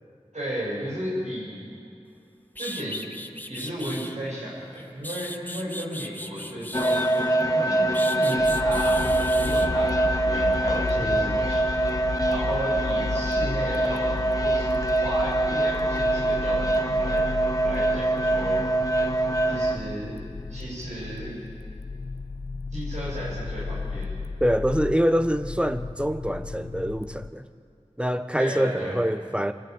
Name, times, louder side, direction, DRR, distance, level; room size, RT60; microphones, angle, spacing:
voice 1, 0.3-1.7 2.6-3.1 3.5-7.2 7.5-11.7 12.3-17.3 17.6-18.7 19.4-20.1 20.5-21.3 22.7-24.3 28.4-29.0, right 1 dB, 85° right, -8 dB, 6.7 m, -34 dB
sound 1, 2.1-2.2 2.5-4.2 4.8-7.4 7.9-9.7, left 1 dB, 15° left, 1.1 m, -38 dB
sound 2, 6.7-19.8, right 2 dB, 30° left, 1.6 m, -24 dB
sound 3, 8.4-27.3, left 3 dB, 65° left, 0.7 m, -34 dB
voice 2, 11.0-11.5 24.4-27.5 28.0-29.5, equal, 10° right, 10 dB, 1.0 m, -25 dB
25.5 x 12.5 x 9.5 m, 2.5 s
wide cardioid pair, 45°, 12 cm